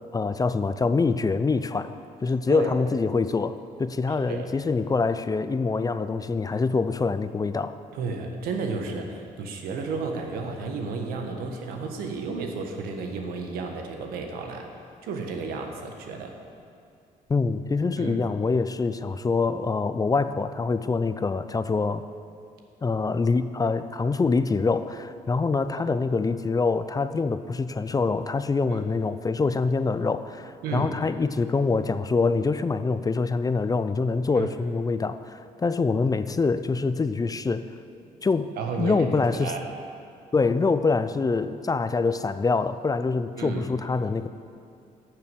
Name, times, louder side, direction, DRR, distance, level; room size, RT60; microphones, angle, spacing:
voice 1, 0.1-1.9 2.2-7.7 17.3-22.0 22.8-37.7 38.2-39.5 40.3-44.3, left 4 dB, 25° left, 12 dB, 0.5 m, -25 dB
voice 2, 7.9-14.7 15.0-16.3 18.0-18.2 25.7-26.0 28.7-28.8 30.6-30.9 34.3-34.5 38.6-39.7 43.4-43.6, right 4 dB, 90° right, 3 dB, 1.4 m, -32 dB
12.0 x 6.8 x 7.7 m, 2.4 s
cardioid pair, 85°, 15 cm